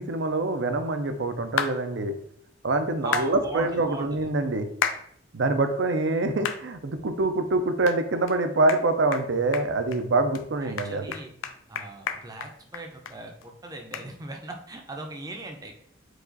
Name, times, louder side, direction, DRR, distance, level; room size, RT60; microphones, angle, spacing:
voice 1, 0.0-2.1 2.6-4.7 5.3-11.1, right 2 dB, 65° right, 8 dB, 0.5 m, -25 dB
sound 1, 1.6-1.8 3.1-3.3 4.8-5.0 5.5-5.6 6.4-6.6 7.1-7.2 7.9-8.0 8.3-8.4 8.7-8.8 9.1-9.3 9.5-10.0 10.3-10.4 10.8-13.2 13.4-13.5 13.9-14.1, left 7 dB, 80° left, 0.4 m, -30 dB
voice 2, 3.0-4.3 10.6-11.3 11.7-15.7, right 2 dB, 20° right, 2 dB, 0.5 m, -38 dB
4.7 x 2.4 x 3.9 m, 0.66 s
head